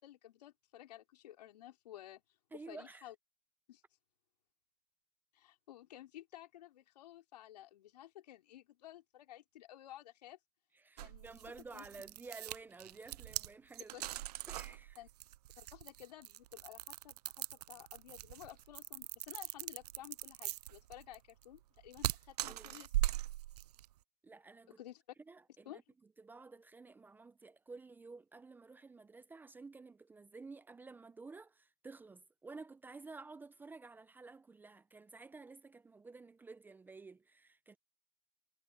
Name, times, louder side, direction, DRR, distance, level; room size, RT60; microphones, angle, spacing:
voice 1, 0.0-2.2 2.5-3.1 3.7-3.8 5.3-10.4 11.0-11.4 11.7-11.8 13.9-14.0 15.0-15.1 15.6-23.1 24.8-25.0 25.7-25.8, left 13 dB, 70° left, 3.8 m, -54 dB
voice 2, 2.5-3.1 10.7-14.1 14.5-15.0 22.5-22.8 24.2-24.8 25.3-25.8 26.2-37.8, right 3 dB, 10° right, 0.9 m, -52 dB
sound 1, 11.0-23.9, right 15 dB, 70° right, 0.6 m, -41 dB
hypercardioid pair, 135°, 21 cm